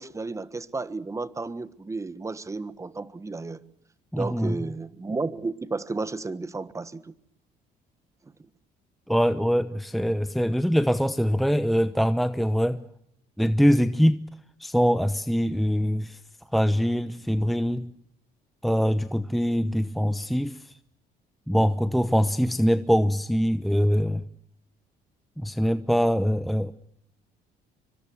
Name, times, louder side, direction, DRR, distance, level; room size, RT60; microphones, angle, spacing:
voice 1, 0.0-3.6 4.1-7.1 8.2-8.3, right 3 dB, 20° right, 1.4 m, -33 dB
voice 2, 4.1-4.6 9.1-12.8 13.4-14.2 14.6-16.2 16.5-17.9 18.6-20.7 21.5-24.2 25.4-26.7, equal, ahead, 0.9 m, -23 dB
26.0 x 25.0 x 6.4 m
cardioid pair, 110°, 17 cm